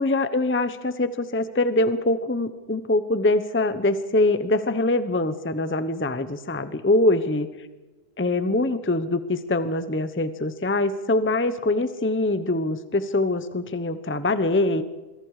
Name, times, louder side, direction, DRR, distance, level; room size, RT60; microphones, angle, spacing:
voice 1, 0.0-7.5 8.2-14.8, left 2 dB, 10° left, 12 dB, 0.9 m, -23 dB
26.5 x 23.5 x 4.9 m, 1.2 s
omnidirectional pair, 1.3 m